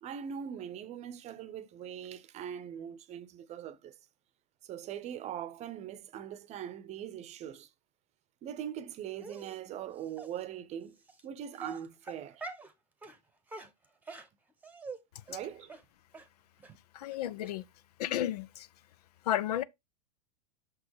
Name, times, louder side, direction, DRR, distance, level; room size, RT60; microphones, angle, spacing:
voice 1, 0.0-4.0 4.6-7.7 8.4-11.0 11.2-12.4 15.3-15.7, right 9 dB, 30° right, 0.8 m, -41 dB
Dog, 9.2-9.6 10.2-10.3 11.1-11.2 11.6-12.7 13.0-13.2 13.5-15.0 15.3-15.4 15.7-15.8 16.1-16.3 16.6-16.7 17.1-17.2 17.4-17.5, right 3 dB, 5° right, 1.1 m, -44 dB
voice 2, 16.9-17.6 18.0-18.7 19.2-19.6, left 12 dB, 70° left, 0.6 m, -32 dB
6.3 x 6.2 x 3.1 m
hypercardioid pair, 105°, 21 cm